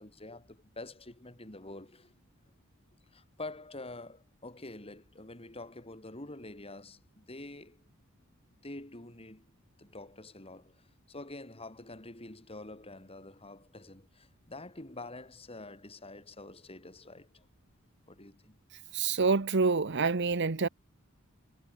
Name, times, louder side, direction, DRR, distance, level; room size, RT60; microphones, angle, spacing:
voice 1, 0.0-2.1 3.1-7.8 8.6-17.5 18.1-18.6, left 2 dB, 30° left, 4.3 m, -47 dB
voice 2, 18.9-20.7, right 4 dB, 55° right, 0.9 m, -27 dB
head